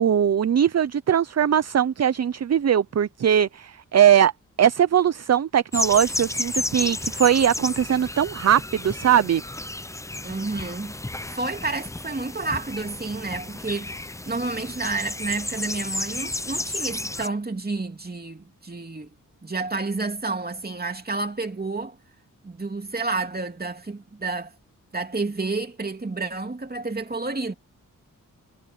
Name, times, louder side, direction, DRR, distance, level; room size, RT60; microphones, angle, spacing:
voice 1, 0.0-4.3 4.6-9.4, right 9 dB, 50° right, 0.6 m, -20 dB
sound 1, 5.7-17.3, left 2 dB, 10° left, 0.5 m, -32 dB
voice 2, 10.2-10.9 11.3-19.1 19.4-22.0 22.4-24.5 24.9-27.5, right 3 dB, 30° right, 2.9 m, -30 dB
wide cardioid pair, 95°, 34 cm